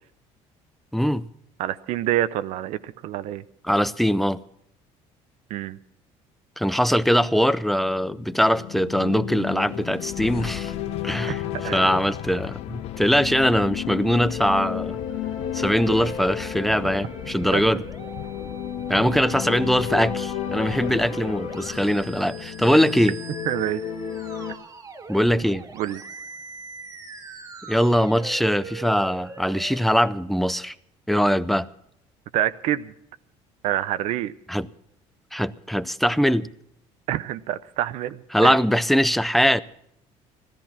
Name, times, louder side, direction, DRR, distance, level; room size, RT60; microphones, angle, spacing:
voice 1, 0.9-1.3 3.6-4.4 6.6-10.7 11.0-15.0 15.5-17.8 18.9-23.1 25.1-25.7 27.7-30.7 31.1-31.7 34.5-34.7 35.3-36.5 38.3-39.6, equal, ahead, 0.5 m, -22 dB
voice 2, 1.6-3.4 5.5-5.8 11.2-11.4 11.6-11.9 17.5-17.8 23.5-23.8 25.7-26.0 32.3-32.9 33.6-34.3 37.1-38.6, right 12 dB, 70° right, 0.7 m, -27 dB
sound 1, 7.7-24.5, left 10 dB, 80° left, 1.9 m, -33 dB
sound 2, 9.4-22.5, left 13 dB, 55° left, 0.6 m, -39 dB
Musical instrument, 16.8-29.8, right 5 dB, 30° right, 1.8 m, -41 dB
16.0 x 13.5 x 5.8 m
cardioid pair, 130°, 12 cm